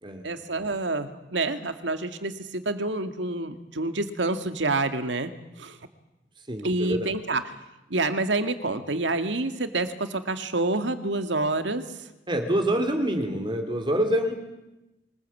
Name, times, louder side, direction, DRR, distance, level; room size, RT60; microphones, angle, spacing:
voice 1, 0.2-5.3 5.6-5.8 6.6-7.4 7.9-12.1, right 2 dB, 90° right, 9 dB, 2.0 m, -28 dB
voice 2, 6.5-7.1 12.3-14.3, right 1 dB, 25° right, 6 dB, 2.6 m, -26 dB
24.5 x 20.0 x 8.4 m, 0.99 s
head